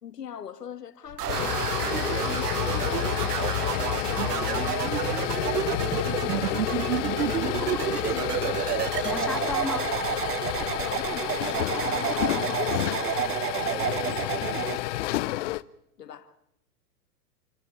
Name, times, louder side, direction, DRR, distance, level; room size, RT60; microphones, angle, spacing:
voice 1, 0.0-4.1 5.2-6.0 8.0-8.8 9.0-9.4 10.6-15.6 16.0-16.3, left 8 dB, 90° left, 2.1 m, -43 dB
sound 1, 1.1-15.6, left 17 dB, 50° left, 0.9 m, -30 dB
sound 2, 1.2-14.8, right 12 dB, 80° right, 1.1 m, -30 dB
voice 2, 9.0-9.8, left 2 dB, ahead, 2.0 m, -33 dB
28.0 x 14.5 x 8.6 m
hypercardioid pair, 130°, 47 cm